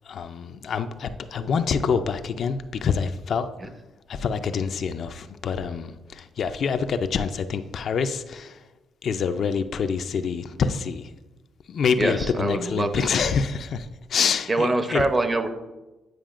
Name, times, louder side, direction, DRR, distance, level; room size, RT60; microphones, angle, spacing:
voice 1, 0.1-3.5 4.1-8.6 9.0-11.1 11.7-15.0, left 6 dB, 60° left, 0.3 m, -26 dB
voice 2, 12.0-13.1 14.5-15.5, right 2 dB, 25° right, 0.7 m, -24 dB
9.0 x 4.8 x 2.4 m
cardioid pair, 90°, 0 cm